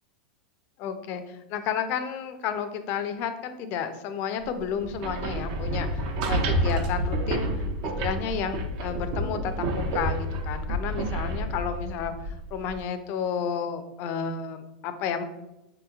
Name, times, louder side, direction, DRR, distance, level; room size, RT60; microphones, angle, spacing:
voice 1, 0.8-7.5 7.8-15.2, left 7 dB, 50° left, 9 dB, 0.4 m, -32 dB
sound 1, 4.8-12.8, right 1 dB, 60° right, 0.6 m, -29 dB
4.7 x 3.0 x 2.3 m, 0.92 s
hypercardioid pair, 115°, 5 cm